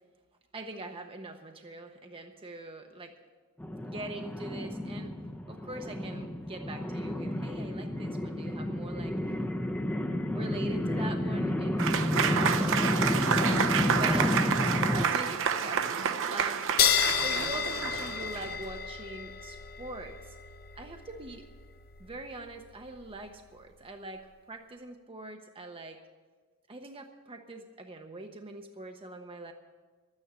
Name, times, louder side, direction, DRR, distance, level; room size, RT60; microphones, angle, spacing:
voice 1, 0.5-3.2 3.7-5.1 5.5-9.4 10.3-11.8 12.3-14.4 14.8-16.7 17.2-20.3 20.8-21.5 22.0-26.0 26.7-29.5, right 2 dB, 25° right, 4 dB, 0.7 m, -43 dB
sound 1, 3.6-15.0, left 1 dB, 10° left, 0.6 m, -31 dB
Applause / Crowd, 11.8-18.6, right 7 dB, 60° right, 0.7 m, -29 dB
sound 2, 16.8-23.8, left 8 dB, 45° left, 0.8 m, -32 dB
12.0 x 9.6 x 8.8 m, 1.5 s
head